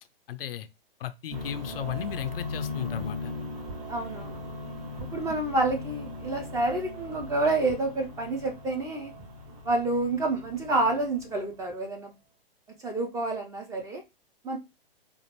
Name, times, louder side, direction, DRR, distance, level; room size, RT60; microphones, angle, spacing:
voice 1, 0.3-0.7 1.0-3.3, left 11 dB, 70° left, 0.5 m, -35 dB
sound 1, 1.3-11.5, left 2 dB, 50° right, 2.3 m, -39 dB
voice 2, 3.9-4.4 5.1-9.1 9.6-12.1 12.8-14.0 14.4-14.6, right 2 dB, 10° right, 0.5 m, -28 dB
4.1 x 2.5 x 2.9 m
hypercardioid pair, 125°, 30 cm